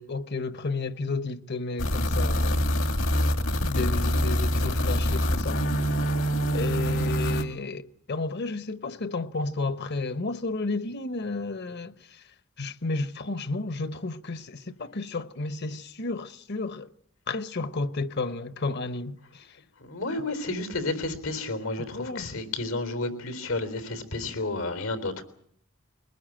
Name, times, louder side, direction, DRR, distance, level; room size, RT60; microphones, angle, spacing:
voice 1, 0.0-2.6 3.6-5.6 6.5-12.2 12.6-16.9 17.3-19.5 21.9-22.3, left 3 dB, 55° left, 1.0 m, -32 dB
sound 1, 1.8-7.4, equal, 70° left, 2.2 m, -25 dB
voice 2, 19.8-25.2, left 2 dB, 90° left, 3.8 m, -31 dB
22.5 x 21.0 x 8.9 m
head